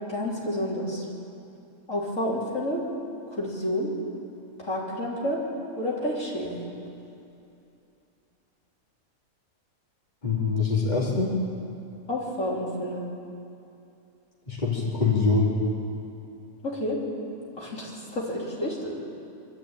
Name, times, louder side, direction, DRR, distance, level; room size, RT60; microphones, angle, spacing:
voice 1, 0.1-1.1 1.9-2.8 3.3-3.9 4.6-5.4 5.8-6.6 12.1-13.0 16.6-17.0 17.6-18.9, left 1 dB, 65° left, -5 dB, 4.0 m, -29 dB
voice 2, 10.2-11.3 14.5-15.5, left 4 dB, 30° left, -5 dB, 3.1 m, -24 dB
24.0 x 13.5 x 8.9 m, 2.7 s
omnidirectional pair, 1.5 m